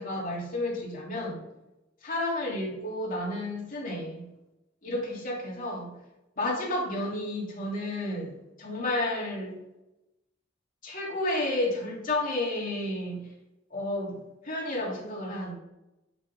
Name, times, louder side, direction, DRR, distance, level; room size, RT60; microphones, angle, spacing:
voice 1, 0.0-1.5 2.0-4.3 4.8-5.9 6.4-9.5 10.8-13.3 13.7-15.5, left 1 dB, 45° left, -3 dB, 2.9 m, -31 dB
7.7 x 7.5 x 3.9 m, 0.94 s
head